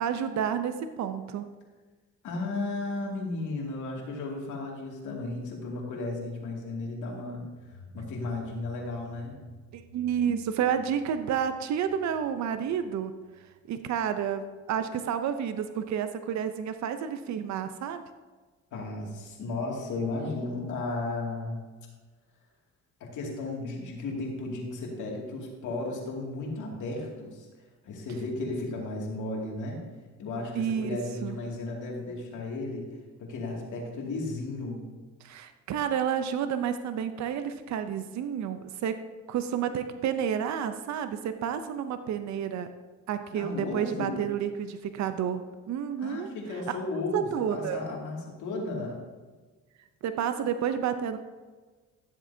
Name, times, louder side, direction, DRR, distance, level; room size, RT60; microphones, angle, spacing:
voice 1, 0.0-1.4 9.7-13.1 13.7-18.0 30.5-31.4 35.2-39.0 39.3-42.7 43.1-45.4 45.7-46.3 46.7-46.8 47.1-47.8 50.0-51.2, right 8 dB, 65° right, 10 dB, 0.6 m, -30 dB
voice 2, 2.2-7.4 7.7-9.4 18.7-21.6 23.0-27.5 27.8-29.8 30.2-32.9 33.2-34.8 43.3-44.2 46.0-49.0, left 2 dB, 80° left, -1 dB, 2.3 m, -34 dB
sound 1, 7.6-14.1, equal, 50° left, 2.7 m, -53 dB
13.0 x 7.6 x 2.7 m, 1.4 s
cardioid pair, 90°, 30 cm